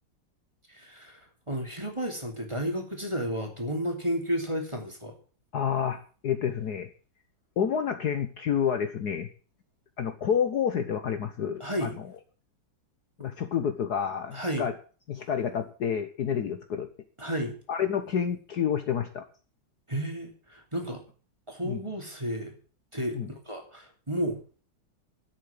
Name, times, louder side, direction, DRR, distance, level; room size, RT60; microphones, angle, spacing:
voice 1, 0.7-5.2 11.6-12.0 14.3-14.7 17.2-17.6 19.9-21.0 21.5-22.6 22.9-24.4, equal, 15° right, 3 dB, 2.7 m, -32 dB
voice 2, 5.5-6.9 7.6-9.3 10.0-11.9 13.2-14.7 15.1-16.9 17.7-19.2 21.6-21.8 23.1-23.3, left 8 dB, 60° left, 9 dB, 1.4 m, -29 dB
11.0 x 8.3 x 8.6 m, 0.40 s
omnidirectional pair, 2.2 m